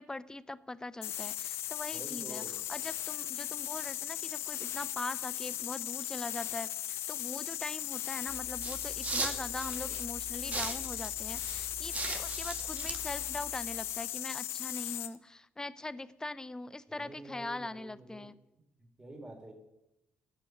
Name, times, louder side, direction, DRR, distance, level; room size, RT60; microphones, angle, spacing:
voice 1, 0.0-2.4 2.7-18.3, left 2 dB, 15° left, 17 dB, 0.6 m, -42 dB
sound 1, 1.0-15.2, left 12 dB, 80° left, 0.6 m, -37 dB
voice 2, 1.9-2.5 16.9-18.3 18.8-19.5, right 2 dB, 15° right, 2 dB, 3.7 m, -48 dB
sound 2, 8.3-13.8, right 3 dB, 35° right, 1.9 m, -40 dB
13.0 x 6.2 x 9.6 m, 0.89 s
cardioid pair, 85°, 4 cm